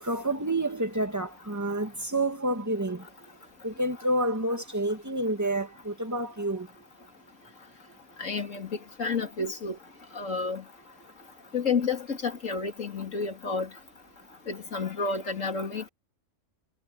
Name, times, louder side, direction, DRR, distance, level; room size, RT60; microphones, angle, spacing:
voice 1, 0.0-3.1 3.6-6.7, right 1 dB, 15° right, 1.9 m, -29 dB
voice 2, 8.2-8.7 9.0-9.8 10.1-10.6 11.5-13.7 14.5-15.9, left 4 dB, 75° left, 3.1 m, -30 dB
omnidirectional pair, 1.4 m